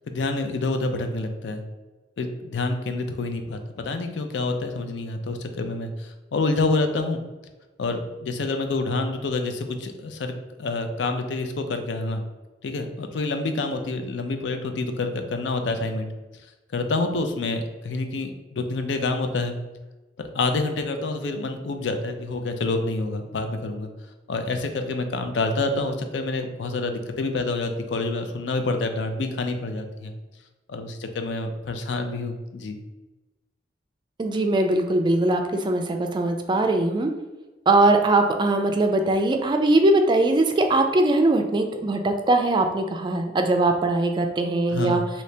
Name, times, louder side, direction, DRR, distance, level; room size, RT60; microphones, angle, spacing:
voice 1, 0.1-1.6 2.2-7.2 7.8-10.3 10.6-12.2 12.6-16.1 16.7-19.5 20.2-23.9 24.3-30.1 30.7-32.8 44.7-45.0, left 3 dB, 80° left, 6 dB, 0.4 m, -27 dB
voice 2, 34.2-37.1 37.7-45.0, right 2 dB, 25° right, 4 dB, 0.3 m, -21 dB
2.8 x 2.7 x 3.2 m, 1.1 s
head